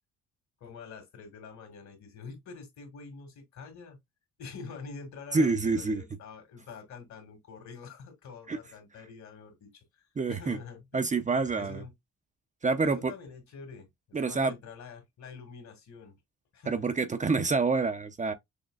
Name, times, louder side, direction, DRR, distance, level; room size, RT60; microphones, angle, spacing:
voice 1, 0.6-4.0 4.4-9.8 10.3-11.0 11.6-11.9 12.8-16.2 16.5-16.9, left 5 dB, 65° left, 2.1 m, -46 dB
voice 2, 5.3-6.0 8.5-8.6 10.2-10.6 10.9-11.8 12.6-13.1 14.1-14.5 16.7-18.3, right 4 dB, 25° right, 0.6 m, -27 dB
6.4 x 3.0 x 2.3 m
cardioid pair, 90°, 30 cm